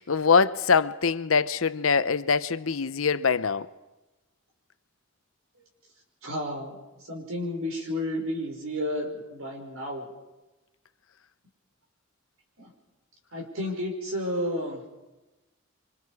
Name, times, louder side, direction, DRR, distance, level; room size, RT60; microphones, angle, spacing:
voice 1, 0.0-3.7, left 5 dB, 75° left, 0.8 m, -23 dB
voice 2, 6.2-6.8 7.1-10.1 12.6-12.7 13.3-14.9, left 1 dB, 80° right, 5.3 m, -31 dB
27.0 x 25.0 x 4.9 m
head